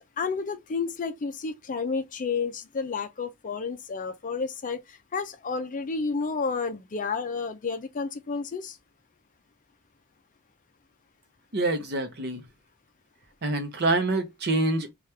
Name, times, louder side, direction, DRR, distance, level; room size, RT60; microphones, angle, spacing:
voice 1, 0.2-8.8, left 4 dB, 35° left, 0.4 m, -31 dB
voice 2, 11.5-12.4 13.4-14.9, right 2 dB, 50° right, 0.7 m, -26 dB
2.9 x 2.4 x 3.2 m
head